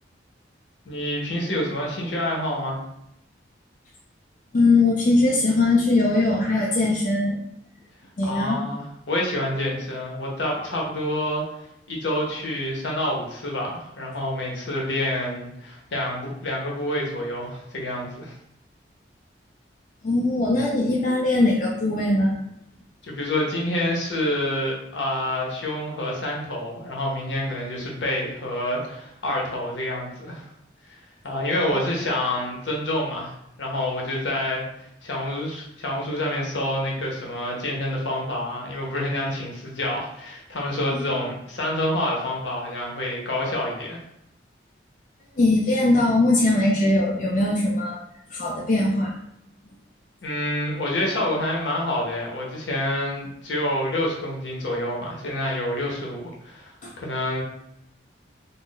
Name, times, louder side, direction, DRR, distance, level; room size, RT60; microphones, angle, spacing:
voice 1, 0.8-2.8 8.3-11.4 11.9-18.3 23.0-30.5 30.9-31.0 31.2-34.7 35.0-44.0 50.2-57.4, left 1 dB, 75° left, -2 dB, 0.8 m, -27 dB
voice 2, 4.5-7.4 8.2-8.6 20.0-22.4 31.7-31.8 40.9-41.0 45.4-48.0 48.3-49.1 56.8-56.9, left 2 dB, 40° left, -3 dB, 0.4 m, -21 dB
2.5 x 2.0 x 3.7 m, 0.78 s
head